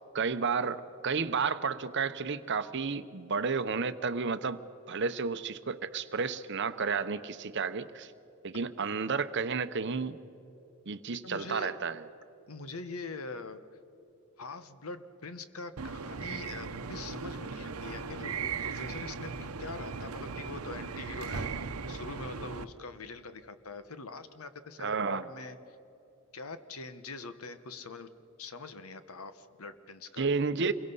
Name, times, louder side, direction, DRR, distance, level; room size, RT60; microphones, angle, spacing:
voice 1, 0.1-8.1 8.4-10.2 10.9-12.0 24.8-25.2 30.2-30.7, right 5 dB, 55° right, 12 dB, 0.8 m, -32 dB
voice 2, 11.2-11.9 12.5-13.7 14.4-21.5 21.9-25.8 26.3-28.1 28.4-30.3, left 3 dB, 85° left, 11 dB, 1.1 m, -43 dB
sound 1, 15.8-22.6, right 5 dB, 90° right, 0.8 m, -38 dB
27.5 x 22.5 x 5.5 m, 2.9 s
head